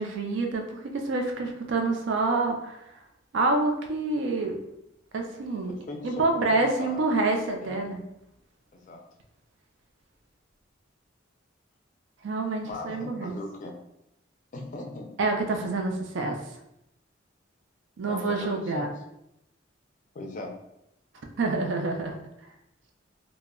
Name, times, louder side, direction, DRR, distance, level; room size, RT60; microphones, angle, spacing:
voice 1, 0.0-2.8 3.3-4.6 5.1-5.7 6.0-8.0 12.2-13.4 15.2-16.4 18.0-18.9 21.4-22.2, right 3 dB, 70° right, 3 dB, 0.4 m, -27 dB
voice 2, 5.9-6.5 6.8-7.1 7.6-7.8 8.7-9.0 12.6-13.7 14.5-15.1 18.0-18.9 20.1-20.5, left 2 dB, 40° left, 2 dB, 0.4 m, -38 dB
2.2 x 2.0 x 3.5 m, 0.83 s
head